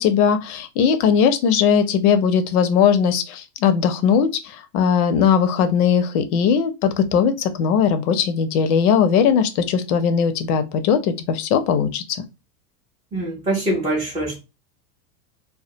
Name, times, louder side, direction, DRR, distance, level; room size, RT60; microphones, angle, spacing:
voice 1, 0.0-12.0, left 7 dB, 65° left, 0.6 m, -19 dB
voice 2, 13.1-14.4, right 1 dB, 10° right, 0.4 m, -24 dB
2.2 x 2.2 x 2.7 m
supercardioid pair, 130°, 47 cm